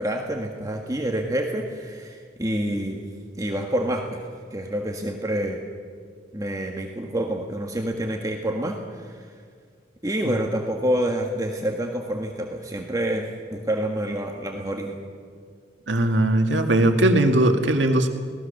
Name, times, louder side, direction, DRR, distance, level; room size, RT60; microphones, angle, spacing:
voice 1, 0.0-3.0 3.4-4.2 4.5-5.6 6.3-9.3 10.0-15.0, right 1 dB, 20° right, 1 dB, 1.5 m, -27 dB
voice 2, 15.9-18.1, right 1 dB, 85° right, 5 dB, 2.0 m, -19 dB
22.5 x 18.0 x 6.6 m, 2.1 s
head